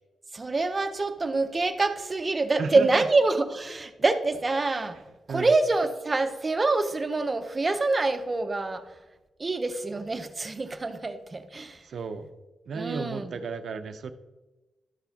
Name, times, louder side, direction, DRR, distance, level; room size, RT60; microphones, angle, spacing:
voice 1, 0.3-5.0 5.3-8.9 9.4-11.9 12.7-13.3, right 3 dB, 30° right, 8 dB, 0.7 m, -26 dB
voice 2, 2.6-3.0 5.3-5.5 11.8-12.3 12.7-14.1, right 5 dB, 70° right, 9 dB, 0.6 m, -33 dB
12.5 x 6.1 x 2.8 m, 1.1 s
cardioid pair, 85°, 0 cm